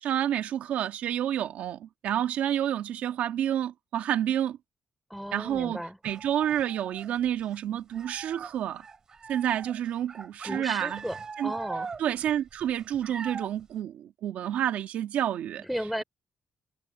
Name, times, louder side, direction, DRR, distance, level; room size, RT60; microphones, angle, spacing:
voice 1, 0.0-4.6 5.3-8.9 9.3-11.0 11.4-11.5 12.0-15.7, right 10 dB, 75° right, 1.7 m, -29 dB
voice 2, 5.1-6.0 10.4-11.9 15.6-16.0, equal, ahead, 3.4 m, -35 dB
sound 1, 6.0-7.6 7.9-13.6, right 5 dB, 30° right, 2.6 m, -41 dB
cardioid pair, 175°, 3 cm